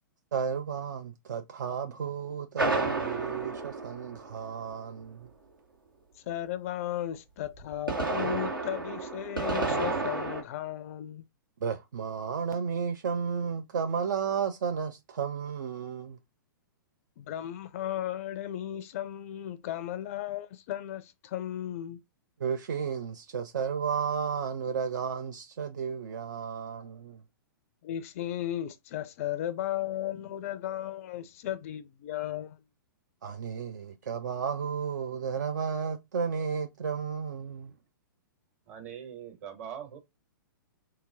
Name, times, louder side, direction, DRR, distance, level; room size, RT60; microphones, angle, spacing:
voice 1, 0.3-5.3 11.6-16.2 22.4-27.2 33.2-37.7, right 6 dB, 60° right, 0.4 m, -33 dB
sound 1, 2.6-4.7 7.6-10.4, right 3 dB, 80° right, 1.3 m, -31 dB
voice 2, 6.3-11.2 17.2-22.0 27.8-32.6, left 12 dB, 40° left, 0.4 m, -35 dB
voice 3, 38.7-40.0, right 9 dB, 45° right, 1.4 m, -42 dB
3.7 x 2.8 x 2.5 m
figure-of-eight pair, 110°, 11 cm